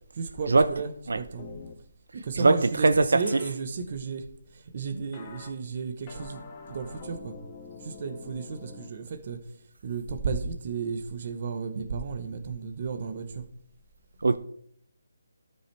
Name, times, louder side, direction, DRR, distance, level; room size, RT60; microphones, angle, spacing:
voice 1, 0.1-1.4 2.1-7.4 7.8-13.5, right 5 dB, 30° right, 0.9 m, -34 dB
sound 1, 1.4-1.7 3.3-3.5 5.1-5.5 6.1-8.9, left 4 dB, 20° left, 0.8 m, -45 dB
voice 2, 2.4-3.0 14.2-14.4, right 3 dB, 70° right, 0.5 m, -20 dB
13.0 x 5.5 x 3.3 m
hypercardioid pair, 175°, 0 cm